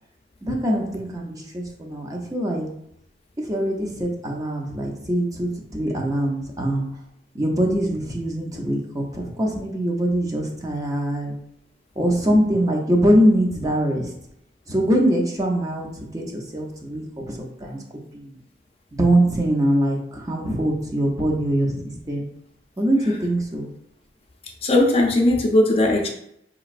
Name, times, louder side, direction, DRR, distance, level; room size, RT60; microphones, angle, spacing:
voice 1, 0.4-2.7 3.4-6.9 7.3-11.4 12.0-14.1 14.7-17.8 18.1-18.4 18.9-22.3 22.8-23.7, right 1 dB, 20° right, 0 dB, 0.6 m, -23 dB
voice 2, 24.6-26.1, left 1 dB, 35° left, 1 dB, 0.5 m, -18 dB
5.0 x 3.0 x 2.5 m, 0.76 s
head